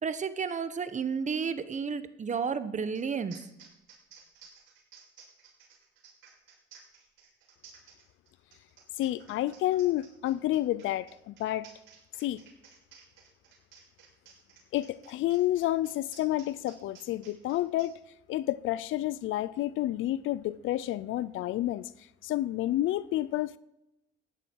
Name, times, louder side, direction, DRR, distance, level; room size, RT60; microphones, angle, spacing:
voice 1, 0.0-3.4, right 6 dB, 35° right, 1.1 m, -32 dB
sound 1, 2.9-3.0 3.3-17.9, right 6 dB, 80° right, 5.4 m, -55 dB
voice 2, 9.0-11.7 12.2-12.4 14.7-17.9 18.3-21.9 22.2-23.6, left 14 dB, 80° left, 0.5 m, -30 dB
15.0 x 10.5 x 4.6 m
cardioid pair, 90°, 20 cm